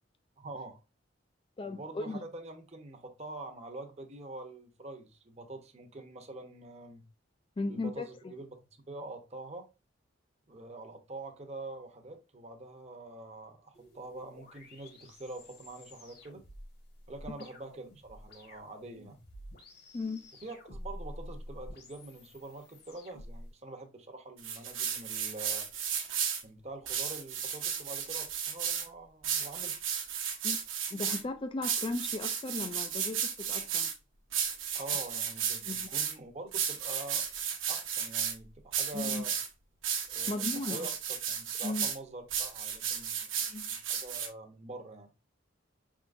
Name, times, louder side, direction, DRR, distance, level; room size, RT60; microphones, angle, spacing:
voice 1, 0.4-0.8 1.7-7.1 7.7-9.7 10.5-16.4 17.1-19.2 20.4-25.7 26.4-29.8 34.7-37.3 37.7-39.3 40.1-40.9 41.3-45.1, right 2 dB, 35° right, 0.8 m, -45 dB
voice 2, 1.6-2.2 7.6-8.1 19.9-20.2 30.4-30.6 30.9-33.9 35.7-35.9 38.9-39.2 40.3-40.9 41.6-41.9 43.5-43.7, left 2 dB, 25° left, 0.4 m, -36 dB
sound 1, 13.7-23.5, left 1 dB, 55° left, 1.3 m, -49 dB
sound 2, 24.4-26.4 26.9-28.9 29.2-31.2 31.6-33.9 34.3-36.1 36.5-38.3 38.7-39.5 39.8-42.0 42.3-44.3, right 8 dB, 90° right, 1.0 m, -33 dB
5.5 x 3.7 x 2.5 m
head